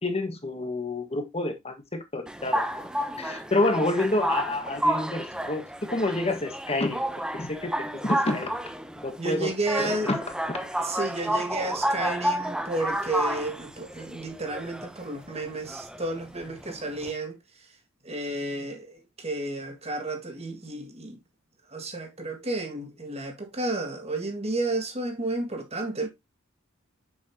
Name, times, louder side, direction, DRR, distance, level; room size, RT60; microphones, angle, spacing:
voice 1, 0.0-2.7 3.2-5.6 5.9-7.0 7.3-8.5 9.0-9.5 9.8-10.2, left 2 dB, 30° left, 1.5 m, -28 dB
sound 1, 2.3-17.1, equal, 5° right, 0.7 m, -31 dB
voice 2, 9.2-10.1 10.8-17.4 18.0-21.2 21.7-26.1, right 2 dB, 30° right, 1.9 m, -32 dB
7.4 x 5.7 x 2.8 m
head